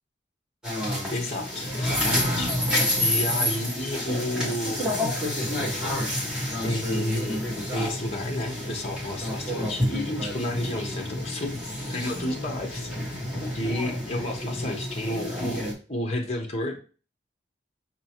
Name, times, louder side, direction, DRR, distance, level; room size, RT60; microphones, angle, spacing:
sound 1, 0.6-15.7, left 1 dB, 5° right, 1.2 m, -29 dB
voice 1, 1.1-2.5 3.0-6.0 6.6-7.4 7.7-11.6 11.9-12.9 13.5-16.8, left 1 dB, 35° left, 2 dB, 0.7 m, -31 dB
5.5 x 2.9 x 2.8 m, 0.37 s
head